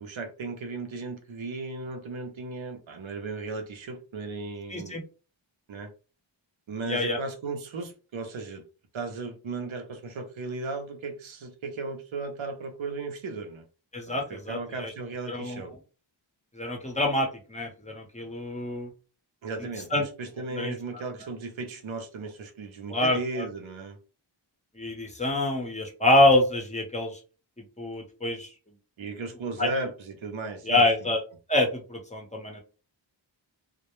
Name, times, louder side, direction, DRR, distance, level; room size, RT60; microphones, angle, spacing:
voice 1, 0.0-5.0 5.7-5.9 6.7-8.6 8.9-13.6 14.1-15.7 19.4-24.0 29.0-31.1, right 3 dB, 80° right, 0.6 m, -36 dB
voice 2, 4.7-5.0 6.9-7.2 13.9-14.9 15.3-15.6 16.5-18.9 19.9-20.0 20.5-20.7 22.9-23.5 24.8-27.2 27.6-28.5 29.6-29.7 30.7-31.2 31.5-32.6, left 1 dB, 15° left, 0.7 m, -26 dB
2.1 x 2.1 x 2.9 m
wide cardioid pair, 75°, 47 cm